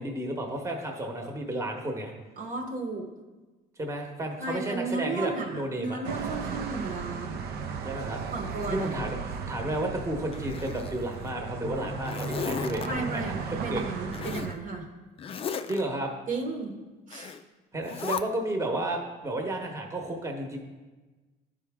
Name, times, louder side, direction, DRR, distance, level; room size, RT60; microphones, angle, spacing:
voice 1, 0.0-2.1 3.8-6.0 7.8-8.2 8.7-9.2 9.5-13.8 15.7-16.1 17.7-20.6, right 1 dB, 15° right, 2 dB, 1.0 m, -32 dB
voice 2, 2.4-3.1 4.4-7.4 8.3-8.9 12.8-14.9 16.3-16.7 17.1-17.3, right 3 dB, 50° right, 3 dB, 1.1 m, -34 dB
sound 1, 6.0-14.6, right 5 dB, 70° right, 0.6 m, -35 dB
Zipper (clothing), 10.3-11.3 11.7-12.9 14.1-14.5 15.2-15.8 17.1-17.4 17.8-18.2, left 7 dB, 35° left, 0.4 m, -35 dB
10.5 x 4.9 x 3.6 m, 1.2 s
cardioid pair, 110°, 17 cm